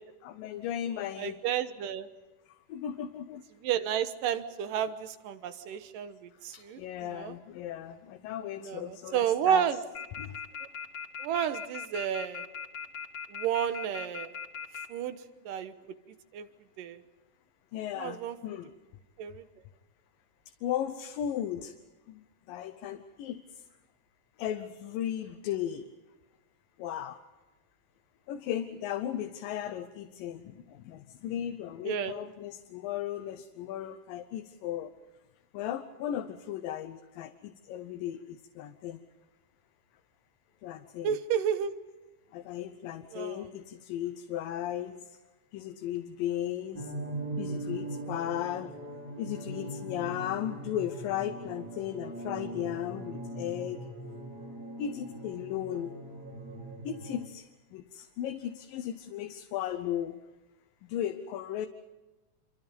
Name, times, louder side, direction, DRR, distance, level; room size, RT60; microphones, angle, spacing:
voice 1, 0.2-1.4 2.5-3.4 6.5-9.7 10.2-10.4 17.7-18.7 20.6-21.8 22.1-23.7 24.4-25.9 26.8-27.2 28.3-34.9 35.5-39.0 40.6-41.2 42.3-45.2 45.5-46.9 47.4-48.8 49.2-53.9 54.8-55.9 56.8-60.2 60.9-61.7, left 11 dB, 80° left, 7 dB, 2.6 m, -36 dB
voice 2, 1.2-2.1 3.6-7.4 8.6-9.8 10.6-10.7 11.2-12.5 13.3-14.3 14.9-15.2 15.5-15.7 16.3-16.5 16.8-17.0 18.0-18.4 19.2-19.4 31.8-32.2 41.0-41.7 43.1-43.5, right 9 dB, 75° right, 10 dB, 2.7 m, -31 dB
sound 1, 9.9-14.8, left 6 dB, 40° left, 2.9 m, -38 dB
sound 2, 46.7-57.3, right 1 dB, 30° right, 3.5 m, -40 dB
27.0 x 25.0 x 5.4 m, 1.1 s
omnidirectional pair, 4.0 m